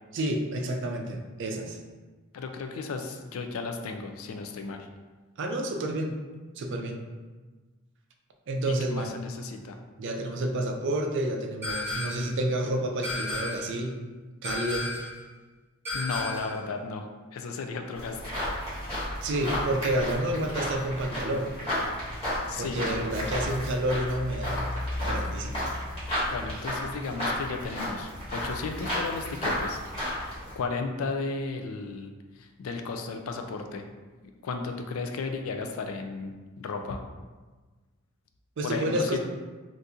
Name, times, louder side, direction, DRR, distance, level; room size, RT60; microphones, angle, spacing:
voice 1, 0.1-1.8 5.4-6.1 6.6-7.0 8.5-9.1 10.0-14.0 14.4-14.9 19.2-21.5 22.6-24.6 25.0-25.7 38.6-39.2, right 1 dB, 60° right, 3 dB, 0.4 m, -29 dB
voice 2, 2.3-4.9 8.7-9.8 15.9-18.4 22.5-23.0 26.3-29.8 30.2-33.9 34.4-37.0 38.6-39.2, left 4 dB, 75° left, 5 dB, 0.4 m, -34 dB
sound 1, 11.6-12.4 13.0-13.8 14.4-15.2 15.8-16.6, left 2 dB, 10° right, 1.0 m, -33 dB
sound 2, 17.9-30.5, left 1 dB, 25° left, 1.3 m, -32 dB
2.7 x 2.5 x 3.6 m, 1.3 s
head